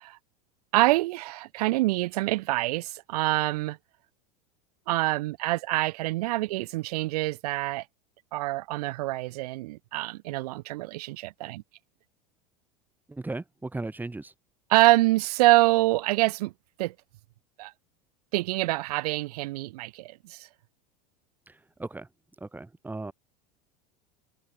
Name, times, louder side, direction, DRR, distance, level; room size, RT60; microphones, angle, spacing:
voice 1, 0.7-3.8 4.9-7.8 8.3-11.6 14.7-16.5 16.8-16.9 17.6-17.7 18.3-20.5, right 19 dB, 70° right, 0.4 m, -25 dB
voice 2, 13.1-14.3 21.5-21.6 21.8-22.1 22.4-23.1, right 2 dB, 10° right, 1.4 m, -36 dB
hypercardioid pair, 90°, 21 cm